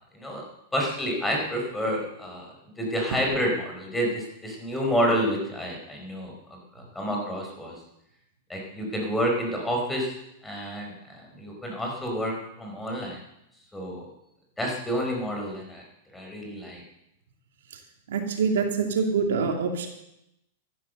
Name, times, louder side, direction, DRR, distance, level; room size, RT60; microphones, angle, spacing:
voice 1, 0.1-0.4 0.7-6.3 6.7-7.7 8.5-10.1 10.4-13.2 13.7-14.1 14.6-15.8 16.1-16.8, equal, 5° left, 0 dB, 4.9 m, -29 dB
voice 2, 18.1-19.9, right 5 dB, 80° right, 4 dB, 2.5 m, -25 dB
13.5 x 12.0 x 6.6 m, 0.84 s
hypercardioid pair, 130°, 0 cm